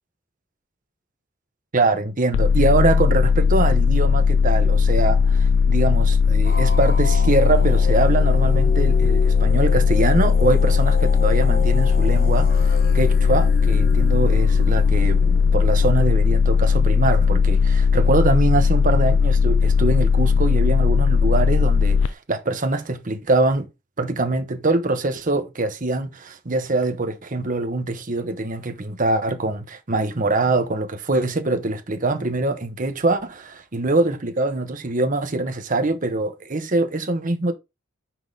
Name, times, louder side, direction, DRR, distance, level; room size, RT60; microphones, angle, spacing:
voice 1, 1.7-23.7 24.0-37.5, right 2 dB, 45° right, 1.1 m, -23 dB
sound 1, 2.3-22.1, left 5 dB, 70° left, 0.3 m, -18 dB
sound 2, 6.4-16.3, left 4 dB, 50° left, 1.2 m, -33 dB
6.0 x 4.9 x 3.8 m
head